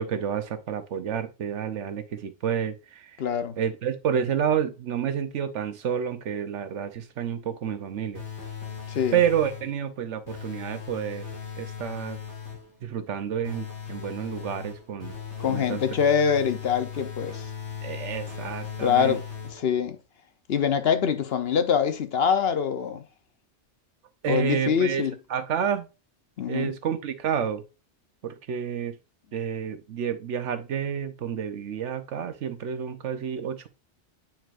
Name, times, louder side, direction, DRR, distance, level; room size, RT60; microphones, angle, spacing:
voice 1, 0.0-3.1 3.6-8.2 9.1-11.3 11.6-12.2 12.8-15.2 15.5-15.8 17.8-19.2 24.2-25.0 25.3-25.9 26.5-27.6 28.2-28.9 29.3-33.7, right 8 dB, 80° right, 1.1 m, -29 dB
voice 2, 3.2-3.6 8.9-9.2 15.4-17.5 18.8-19.2 19.5-20.0 20.5-23.0 24.3-25.1 26.4-26.7, left 7 dB, 60° left, 0.9 m, -24 dB
sound 1, 8.1-9.8 10.3-12.8 13.4-19.8, left 7 dB, 75° left, 2.9 m, -38 dB
8.9 x 4.5 x 2.5 m
omnidirectional pair, 1.2 m